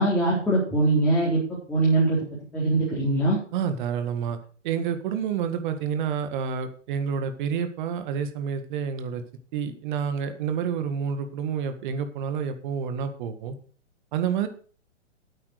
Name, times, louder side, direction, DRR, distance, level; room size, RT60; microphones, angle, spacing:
voice 1, 0.0-1.4 1.7-2.2 2.5-3.4, right 2 dB, 5° left, -9 dB, 4.1 m, -22 dB
voice 2, 3.5-4.4 4.6-9.2 9.5-13.6 14.1-14.5, right 7 dB, 40° right, 9 dB, 1.8 m, -29 dB
8.9 x 8.8 x 6.5 m, 0.42 s
hypercardioid pair, 135°, 37 cm